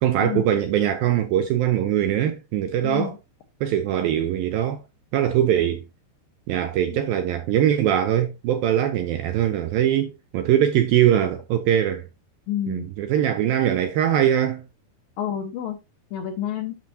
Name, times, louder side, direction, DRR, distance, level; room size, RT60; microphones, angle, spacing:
voice 1, 0.0-3.1 3.6-4.8 5.1-5.8 6.5-12.0 12.7-14.6, right 10 dB, 80° right, 2.2 m, -22 dB
voice 2, 2.8-3.2 6.9-7.0 12.5-12.9 15.2-15.8 16.1-16.7, left 10 dB, 70° left, 2.3 m, -29 dB
9.2 x 6.5 x 2.8 m
omnidirectional pair, 4.9 m